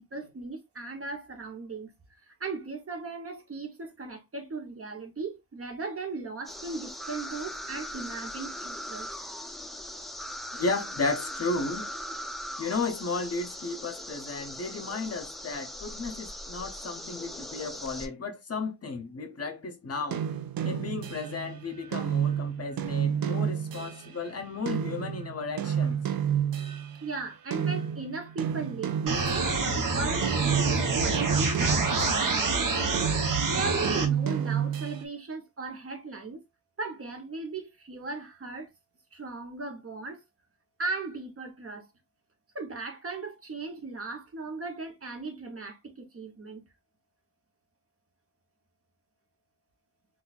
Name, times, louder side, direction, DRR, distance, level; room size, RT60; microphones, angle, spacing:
voice 1, 0.0-9.1 25.6-25.9 27.0-33.0 33.5-36.4 36.8-38.7 39.1-40.2 40.8-41.9 42.5-46.6, right 3 dB, 40° right, 0.9 m, -37 dB
sound 1, 6.5-18.1, left 1 dB, ahead, 0.3 m, -40 dB
voice 2, 10.5-11.9 12.6-20.3 20.6-26.0, left 3 dB, 45° left, 0.6 m, -34 dB
sound 2, 20.1-27.2 27.5-29.8 30.2-32.5 32.9-35.0, right 8 dB, 90° right, 0.5 m, -30 dB
sound 3, 29.1-34.1, right 3 dB, 65° right, 0.9 m, -27 dB
3.8 x 2.4 x 2.3 m
wide cardioid pair, 135°, 35 cm